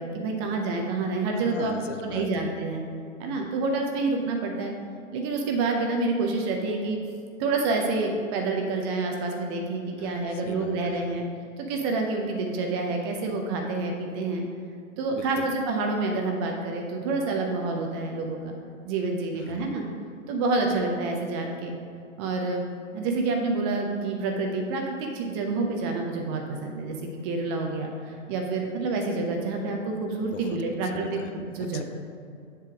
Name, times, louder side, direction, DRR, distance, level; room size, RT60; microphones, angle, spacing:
voice 1, 0.0-1.7 2.0-2.8 3.2-4.7 5.1-7.0 7.4-11.2 11.6-14.4 15.0-18.5 18.8-19.8 20.3-21.7 22.2-22.7 22.9-31.2 31.5-31.8, right 3 dB, 20° right, 2 dB, 0.5 m, -28 dB
voice 2, 1.3-2.6 10.0-11.1 15.1-15.6 19.4-19.8 20.7-20.8 30.2-31.8, left 6 dB, 65° left, 8 dB, 0.7 m, -40 dB
7.4 x 3.4 x 5.9 m, 2.5 s
figure-of-eight pair, 115°, 40 cm